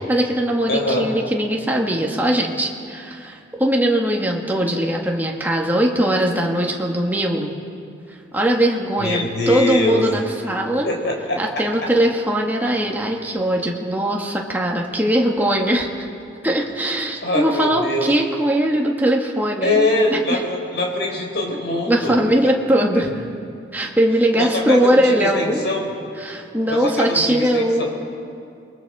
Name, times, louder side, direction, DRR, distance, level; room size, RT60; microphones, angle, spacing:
voice 1, 0.1-7.5 8.3-10.9 11.4-16.0 16.4-20.4 21.9-23.2 23.7-25.7 26.2-27.8, right 1 dB, 10° right, -1 dB, 1.7 m, -20 dB
voice 2, 0.7-1.1 9.0-10.0 10.8-11.4 17.2-18.0 19.6-22.2 24.4-25.9 26.7-27.8, left 2 dB, 70° left, 0 dB, 4.4 m, -23 dB
28.0 x 21.5 x 4.9 m, 2.5 s
head